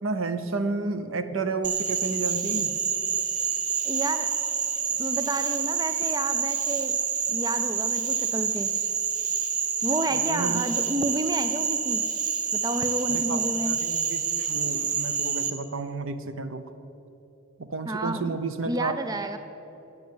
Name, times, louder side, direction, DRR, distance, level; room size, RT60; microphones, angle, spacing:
voice 1, 0.0-2.7 10.1-10.6 13.1-16.7 17.6-19.2, right 3 dB, 70° right, 11 dB, 0.8 m, -31 dB
Frog, 1.6-15.5, right 7 dB, 40° right, 0.8 m, -27 dB
voice 2, 3.8-4.3 5.0-7.0 7.3-8.7 9.8-12.0 12.5-13.8 17.9-18.4 18.7-19.4, right 1 dB, 20° right, 9 dB, 0.4 m, -30 dB
10.5 x 7.8 x 9.5 m, 3.0 s
head